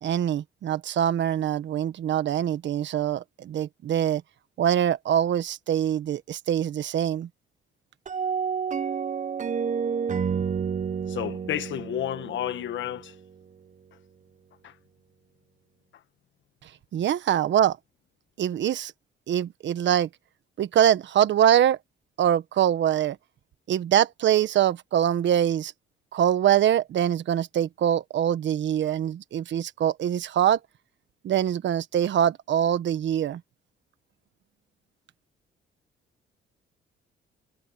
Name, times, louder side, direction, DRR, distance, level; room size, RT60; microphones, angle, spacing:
voice 1, 0.0-4.2 4.6-7.3 16.9-17.8 18.4-18.9 19.3-20.1 20.6-21.8 22.2-23.2 23.7-25.7 26.1-30.6 31.2-33.4, right 10 dB, 65° right, 1.3 m, -24 dB
sound 1, 8.1-13.2, right 6 dB, 40° right, 0.9 m, -30 dB
voice 2, 11.1-13.1, left 11 dB, 70° left, 1.4 m, -31 dB
cardioid pair, 90°, 20 cm